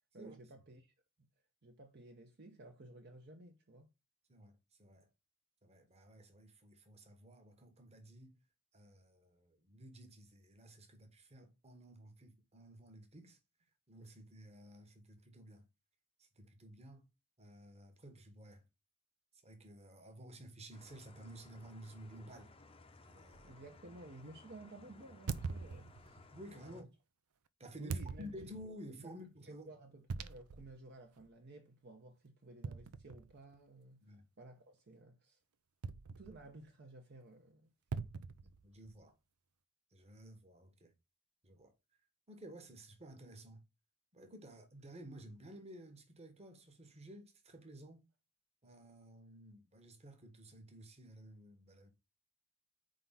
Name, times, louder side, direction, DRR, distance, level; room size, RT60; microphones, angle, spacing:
voice 1, 0.1-1.3 1.6-3.9 23.4-26.3 26.6-26.9 27.8-28.4 29.0-29.1 29.5-34.0 34.4-35.4 36.2-37.7, right 2 dB, 50° right, 0.8 m, -55 dB
voice 2, 4.3-5.1 5.6-8.4 8.7-13.4 13.9-15.7 16.2-17.1 17.4-18.6 19.4-22.5 23.0-23.5 26.3-26.9 27.6-29.7 34.0-34.3 38.4-39.2 39.9-40.9 41.4-41.7 42.3-43.6 44.1-48.0 48.6-51.9, right 1 dB, 30° right, 1.2 m, -54 dB
sound 1, 20.7-26.8, left 3 dB, 25° left, 0.7 m, -60 dB
sound 2, 23.3-23.5 25.3-26.3 27.9-28.7 30.1-30.8 31.2-31.3 32.6-33.6 35.8-36.6 37.9-39.0, right 4 dB, 75° right, 0.5 m, -43 dB
4.6 x 3.8 x 5.6 m
head